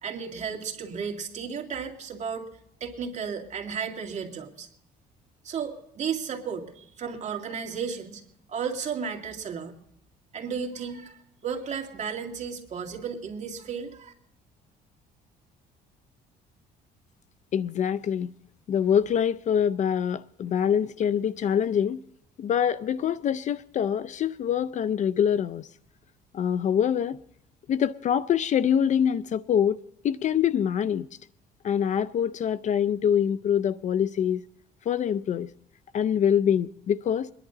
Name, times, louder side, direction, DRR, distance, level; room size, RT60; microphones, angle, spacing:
voice 1, 0.0-2.5 2.8-4.7 5.4-8.2 8.5-9.8 10.3-14.1, right 6 dB, 45° right, 2.3 m, -34 dB
voice 2, 17.5-18.3 18.7-22.0 22.4-25.7 26.3-27.2 27.7-29.8 30.0-31.1 31.6-34.5 34.9-35.5 35.9-37.3, left 8 dB, 45° left, 0.5 m, -25 dB
22.5 x 11.0 x 3.9 m
cardioid pair, 110°, 17 cm